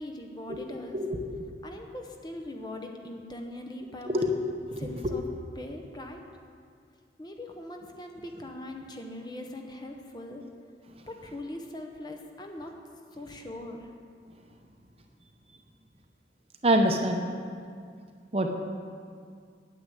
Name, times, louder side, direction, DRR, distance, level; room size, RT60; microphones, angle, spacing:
voice 1, 0.0-1.0 1.6-4.3 4.8-5.2 5.6-6.2 7.2-10.4 11.0-12.8 13.1-13.9, left 1 dB, 25° left, 3 dB, 1.0 m, -41 dB
voice 2, 0.9-1.4 4.1-4.3 4.7-5.1 16.6-17.2 18.3-18.5, right 1 dB, 35° right, 4 dB, 0.8 m, -26 dB
9.5 x 7.8 x 9.3 m, 2.2 s
head